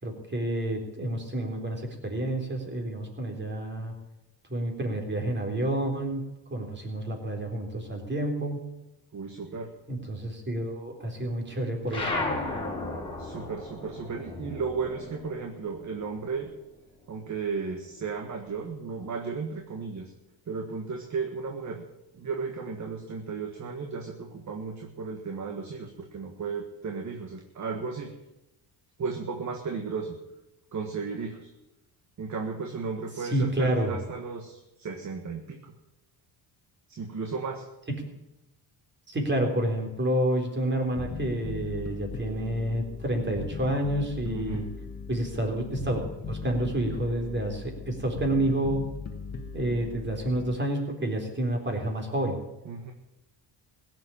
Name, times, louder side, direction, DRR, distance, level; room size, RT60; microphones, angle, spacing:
voice 1, 0.0-3.9 4.5-6.2 6.5-8.6 9.9-12.1 33.2-34.0 37.9-38.1 39.1-44.6 45.1-48.8 49.5-52.4, right 1 dB, 25° right, 2 dB, 3.9 m, -29 dB
voice 2, 9.1-9.7 13.2-16.5 17.1-20.1 20.5-21.8 22.1-28.1 29.0-30.2 30.7-31.5 32.2-35.7 36.9-37.6 44.2-44.6 52.6-52.9, right 5 dB, 40° right, 4 dB, 1.6 m, -34 dB
sound 1, 11.9-16.8 17.1-18.5, left 2 dB, 10° left, 3.8 m, -35 dB
Bass guitar, 41.0-50.6, left 5 dB, 35° left, 1.6 m, -38 dB
16.5 x 7.8 x 8.7 m, 0.95 s
cardioid pair, 105°, 43 cm